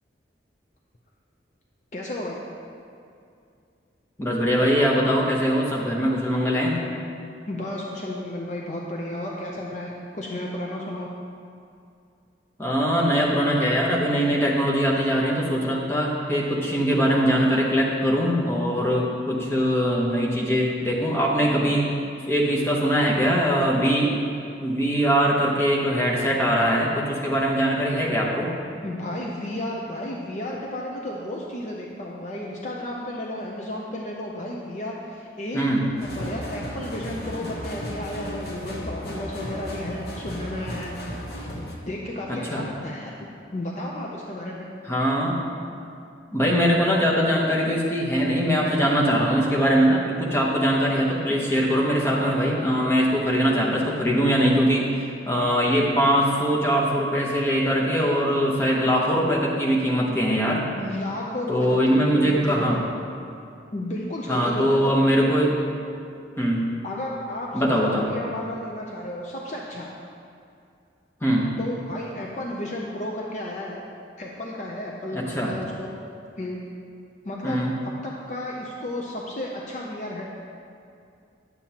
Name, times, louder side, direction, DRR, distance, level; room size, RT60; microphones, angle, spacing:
voice 1, 1.9-2.4 7.5-11.1 28.8-40.9 41.9-43.1 43.5-44.7 60.7-62.8 63.7-65.0 66.8-69.9 71.6-73.8 74.2-75.9 76.4-76.6 77.2-80.2, left 1 dB, 40° left, -2 dB, 0.5 m, -33 dB
voice 2, 4.2-6.8 12.6-21.9 22.3-24.1 24.6-28.5 35.5-35.8 42.3-42.6 44.9-45.4 46.3-60.6 61.5-62.8 64.3-65.5 66.4-66.6 67.5-68.0 71.2-71.5 75.1-75.5 77.4-77.7, equal, 15° left, -4 dB, 0.9 m, -22 dB
sound 1, 36.0-41.7, equal, 55° left, 1.0 m, -34 dB
9.5 x 7.3 x 2.9 m, 2.5 s
head